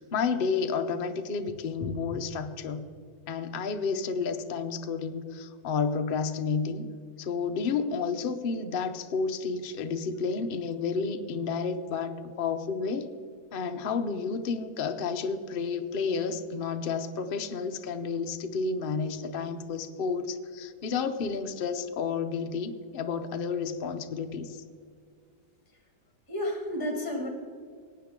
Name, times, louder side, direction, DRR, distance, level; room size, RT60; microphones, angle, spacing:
voice 1, 0.0-2.9 3.3-6.8 7.2-13.1 13.5-24.6, left 5 dB, 55° left, 7 dB, 0.6 m, -31 dB
voice 2, 26.3-27.3, left 1 dB, 15° left, 2 dB, 1.3 m, -31 dB
18.5 x 8.9 x 3.7 m, 2.1 s
omnidirectional pair, 1.9 m